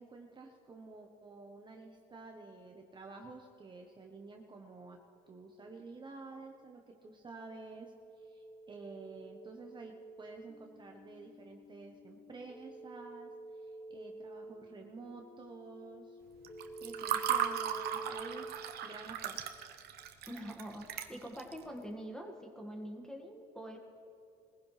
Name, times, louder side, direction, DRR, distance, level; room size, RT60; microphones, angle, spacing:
voice 1, 0.0-5.0 5.3-13.3 13.6-16.2 16.8-18.5 18.8-19.6, right 3 dB, 25° right, 2 dB, 1.1 m, -50 dB
sound 1, 5.3-18.5, right 2 dB, 25° left, 2.2 m, -50 dB
Water / Fill (with liquid), 16.4-21.6, right 9 dB, 70° right, 1.0 m, -36 dB
voice 2, 20.3-23.8, equal, 5° left, 2 dB, 1.9 m, -45 dB
21.0 x 15.5 x 3.4 m, 2.7 s
cardioid pair, 110°, 17 cm